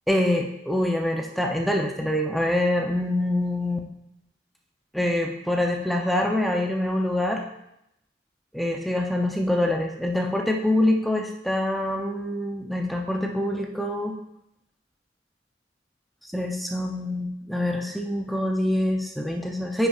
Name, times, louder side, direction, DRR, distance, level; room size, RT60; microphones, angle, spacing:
voice 1, 0.1-3.8 4.9-7.4 8.5-14.2 16.2-19.9, left 1 dB, ahead, 1 dB, 0.5 m, -25 dB
9.7 x 5.5 x 2.4 m, 0.82 s
head